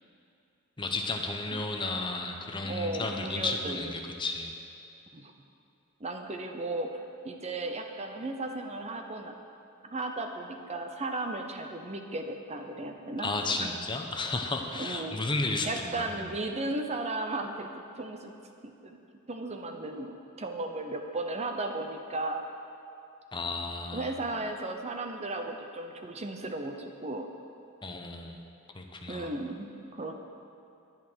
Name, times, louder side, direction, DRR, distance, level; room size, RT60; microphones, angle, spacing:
voice 1, 0.8-4.5 13.2-16.3 23.3-24.2 27.8-28.4 28.7-29.3, left 3 dB, 25° left, 3 dB, 0.9 m, -33 dB
voice 2, 2.6-3.9 5.1-5.3 6.0-9.3 9.8-13.3 13.6-13.8 14.8-15.2 15.6-17.7 18.0-18.4 18.6-19.0 19.3-22.5 23.9-27.3 29.1-30.2, right 2 dB, 30° right, 4 dB, 0.8 m, -35 dB
10.5 x 10.5 x 6.2 m, 2.7 s
head